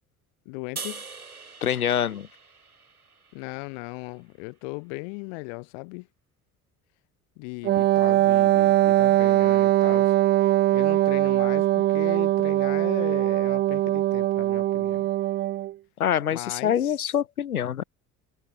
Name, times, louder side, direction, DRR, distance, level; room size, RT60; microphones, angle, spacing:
voice 1, 0.4-1.1 3.3-6.1 7.4-10.1 10.7-15.1 16.3-16.9, left 40 dB or more, 60° left, 1.1 m, -37 dB
sound 1, 0.8-4.0, right 4 dB, 85° right, 3.2 m, -42 dB
voice 2, 1.6-2.3 16.0-17.8, left 9 dB, 90° left, 0.5 m, -25 dB
Wind instrument woodwind instrument, 7.6-15.7, right 14 dB, 25° right, 0.3 m, -21 dB
figure-of-eight pair, 55°, 43 cm